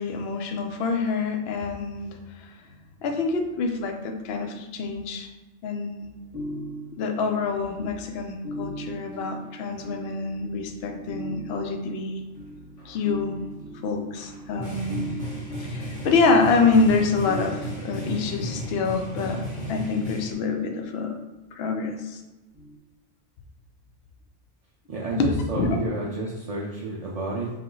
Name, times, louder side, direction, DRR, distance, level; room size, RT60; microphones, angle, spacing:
voice 1, 0.0-2.5 3.0-5.3 5.6-6.1 7.0-12.2 12.9-13.3 13.8-15.0 15.6-19.4 19.7-21.2 21.5-22.2 25.1-25.3 25.6-25.8, left 4 dB, 60° left, 5 dB, 0.8 m, -26 dB
sound 1, 6.0-19.8 22.5-22.8, equal, 20° right, 0.7 m, -40 dB
sound 2, 12.8-13.0 14.1-20.3, equal, 30° left, 1.0 m, -34 dB
voice 2, 24.9-27.5, right 2 dB, 50° right, -5 dB, 0.4 m, -30 dB
3.6 x 2.9 x 3.8 m, 1.1 s
omnidirectional pair, 1.3 m